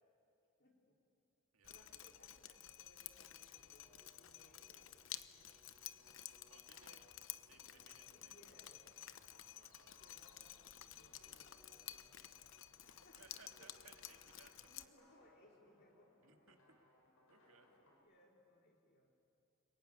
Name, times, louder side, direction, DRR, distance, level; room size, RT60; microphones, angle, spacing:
voice 1, 0.6-1.0 1.7-5.2 8.1-9.0 9.9-12.5 12.8-13.2 13.5-14.0 14.5-16.5 18.0-19.1, left 1 dB, 50° left, -1 dB, 3.0 m, -69 dB
voice 2, 1.5-2.1 6.5-7.1 7.5-8.5 9.6-10.2 13.1-14.5 16.2-16.8 17.3-17.8, right 4 dB, 80° right, 4 dB, 2.2 m, -66 dB
Drip, 1.6-14.8, left 12 dB, 70° left, 0.9 m, -53 dB
sound 1, 3.2-18.0, left 1 dB, 90° left, 7.2 m, -70 dB
sound 2, 3.6-3.7 4.1-5.1 5.5-6.6 6.9-9.3, right 1 dB, 55° right, 5.5 m, -81 dB
30.0 x 20.5 x 9.5 m, 2.7 s
head